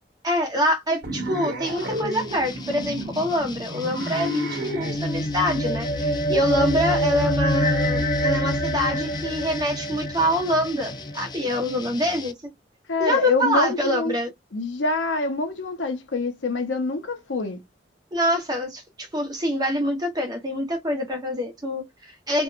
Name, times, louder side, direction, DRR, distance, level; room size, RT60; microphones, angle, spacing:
voice 1, 0.2-12.3 13.0-14.3 18.1-22.4, equal, 20° right, 0.9 m, -25 dB
sound 1, 1.0-5.0, equal, 70° right, 0.9 m, -32 dB
sound 2, 1.6-12.3, left 4 dB, 25° left, 0.4 m, -39 dB
sound 3, 4.5-11.2, equal, 55° left, 0.8 m, -26 dB
voice 2, 6.8-7.2 12.9-14.2 14.5-17.6, left 3 dB, 85° left, 0.7 m, -26 dB
2.7 x 2.3 x 2.4 m
head